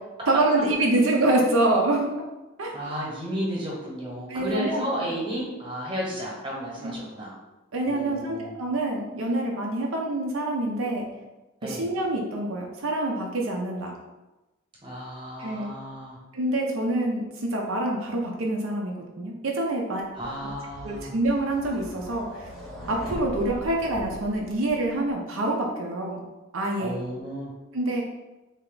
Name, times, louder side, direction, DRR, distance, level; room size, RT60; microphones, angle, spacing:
voice 1, 0.3-2.1 2.6-2.7 4.3-5.1 6.8-7.0 7.7-11.0 11.6-13.9 15.4-15.7 16.3-20.0 20.8-22.5 22.9-26.2 26.5-27.0 27.7-28.0, right 2 dB, 75° right, -1 dB, 0.6 m, -26 dB
voice 2, 2.7-7.3 7.9-8.5 11.6-11.9 14.8-16.2 20.1-21.1 26.8-27.5, equal, 25° right, -4 dB, 1.0 m, -33 dB
sound 1, 20.2-25.1, equal, ahead, 0.8 m, -40 dB
3.3 x 2.8 x 3.8 m, 1.0 s
head